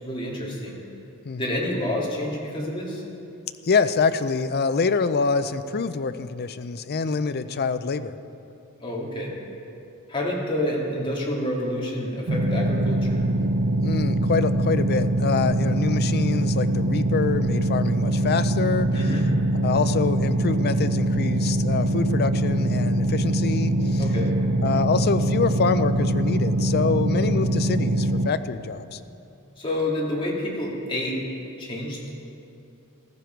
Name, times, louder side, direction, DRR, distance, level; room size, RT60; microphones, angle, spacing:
voice 1, 0.0-0.8 1.4-3.0 8.8-9.4 10.1-13.2 18.9-19.2 24.0-24.4 29.6-31.2 31.6-32.0, left 1 dB, 25° left, -4 dB, 2.6 m, -28 dB
voice 2, 1.2-1.6 3.6-8.2 13.8-19.2 19.6-24.1 24.6-29.0, left 4 dB, 45° left, 11 dB, 0.5 m, -26 dB
sound 1, 12.3-28.3, right 1 dB, 65° right, 0.7 m, -23 dB
15.0 x 14.5 x 4.6 m, 2.7 s
head